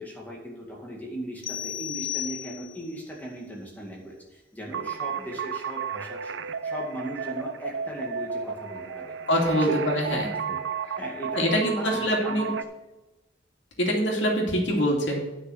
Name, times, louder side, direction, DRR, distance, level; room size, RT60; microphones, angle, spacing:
voice 1, 0.0-6.3 6.6-9.1 9.6-10.2 10.5-10.6 11.0-12.5, right 1 dB, 10° left, -3 dB, 2.2 m, -38 dB
sound 1, 1.4-3.0, left 12 dB, 30° left, 0.6 m, -34 dB
sound 2, 4.7-12.6, right 6 dB, 80° right, 0.6 m, -33 dB
voice 2, 9.3-10.3 11.3-12.5 13.8-15.2, equal, 80° left, -1 dB, 2.5 m, -24 dB
10.0 x 6.2 x 6.4 m, 1.0 s
head